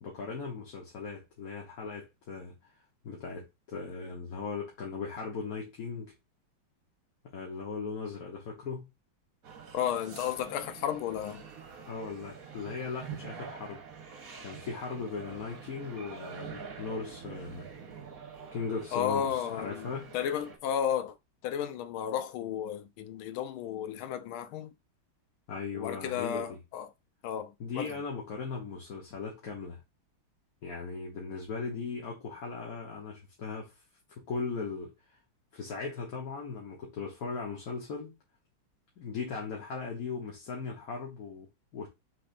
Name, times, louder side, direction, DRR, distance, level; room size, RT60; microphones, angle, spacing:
voice 1, 0.0-2.7 3.0-6.1 7.2-8.9 11.9-13.8 14.4-17.7 18.5-20.1 25.5-26.6 27.6-29.8 30.6-33.7 34.2-34.9 35.5-38.1 39.0-41.9, left 4 dB, 50° left, 1.4 m, -38 dB
sound 1, 9.4-20.6, right 6 dB, 50° right, 1.3 m, -46 dB
voice 2, 9.7-11.4 18.9-21.1 21.4-24.7 25.7-26.9 27.2-28.0, left 9 dB, 85° left, 1.5 m, -33 dB
6.1 x 3.4 x 2.5 m
omnidirectional pair, 2.2 m